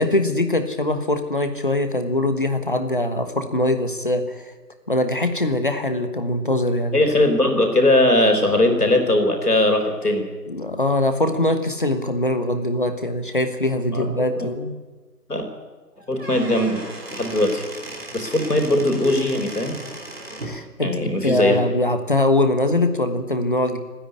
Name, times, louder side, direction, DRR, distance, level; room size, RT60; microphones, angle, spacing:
voice 1, 0.0-4.5 4.9-7.0 10.5-14.7 20.4-20.9 21.2-23.8, left 1 dB, 30° left, 8 dB, 1.4 m, -22 dB
voice 2, 6.9-10.2 13.9-14.5 15.3-15.4 16.1-16.8 17.1-17.6 18.1-19.7 20.8-21.6, left 1 dB, 65° left, 4 dB, 4.7 m, -19 dB
Squeak / Wood, 16.0-20.6, right 2 dB, 35° right, 3.5 m, -36 dB
28.5 x 10.5 x 9.8 m, 1.3 s
figure-of-eight pair, 160°, 50 cm